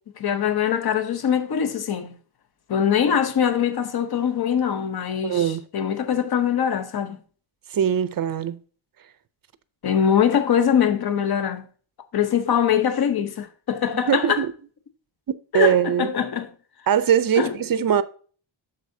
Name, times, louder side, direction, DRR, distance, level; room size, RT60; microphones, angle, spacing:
voice 1, 0.2-2.2 2.7-7.2 9.8-11.6 12.1-14.4 15.5-16.5 17.4-17.6, left 8 dB, 50° left, 0.9 m, -22 dB
voice 2, 5.2-5.6 7.7-8.6 14.1-14.5 15.5-16.1 16.9-18.0, right 9 dB, 45° right, 0.5 m, -21 dB
8.2 x 6.8 x 2.7 m
wide cardioid pair, 175°, 48 cm